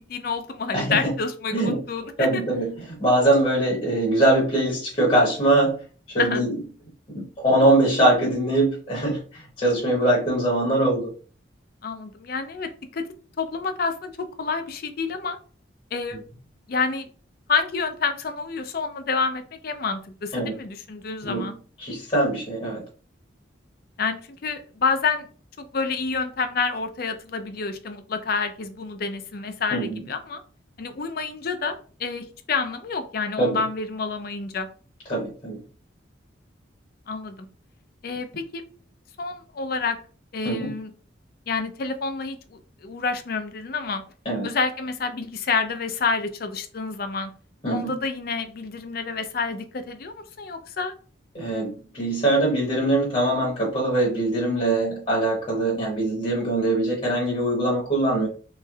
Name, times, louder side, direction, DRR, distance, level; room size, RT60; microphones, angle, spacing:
voice 1, 0.1-2.3 6.2-6.4 11.8-13.0 13.4-15.4 15.9-16.2 16.7-17.1 17.5-21.6 24.0-25.3 25.6-30.4 30.8-34.7 37.1-37.4 38.0-38.6 39.2-40.0 40.3-40.9 41.5-44.0 44.4-47.3 47.7-50.9, left 4 dB, 50° left, 9 dB, 0.4 m, -28 dB
voice 2, 0.7-1.1 1.5-1.8 2.2-5.8 6.1-6.5 7.1-11.1 20.3-20.5 21.2-21.5 21.8-22.8 29.7-30.0 33.4-33.6 35.1-35.6 40.4-40.7 44.2-44.5 47.6-48.0 51.3-58.3, right 1 dB, 35° left, -4 dB, 0.9 m, -22 dB
3.2 x 3.0 x 2.3 m, 0.41 s
head